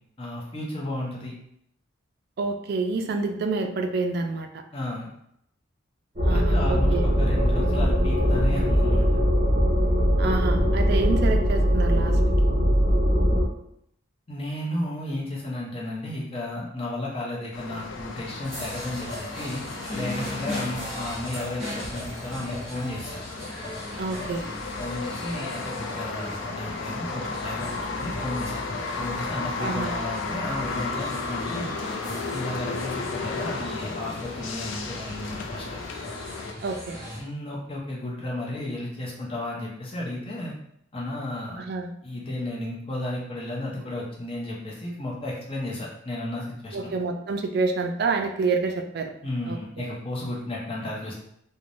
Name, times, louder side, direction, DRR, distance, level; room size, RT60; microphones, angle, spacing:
voice 1, 0.2-1.3 4.7-5.1 6.3-9.1 14.3-19.6 19.9-23.2 24.8-28.6 29.0-31.7 32.3-35.8 37.2-40.5 40.9-41.6 42.0-46.9 49.2-51.1, left 1 dB, 30° left, -3 dB, 0.6 m, -33 dB
voice 2, 2.4-4.6 6.2-7.1 10.2-12.2 24.0-24.5 29.6-29.9 36.6-37.0 41.6-41.9 46.7-49.1 49.5-49.9, right 3 dB, 55° right, 5 dB, 0.3 m, -28 dB
sound 1, 6.2-13.4, equal, 35° right, 0.7 m, -21 dB
sound 2, 17.5-36.5, left 4 dB, 75° left, 0.3 m, -34 dB
sound 3, 18.4-37.2, left 1 dB, ahead, 0.9 m, -38 dB
3.1 x 2.1 x 2.5 m, 0.73 s
head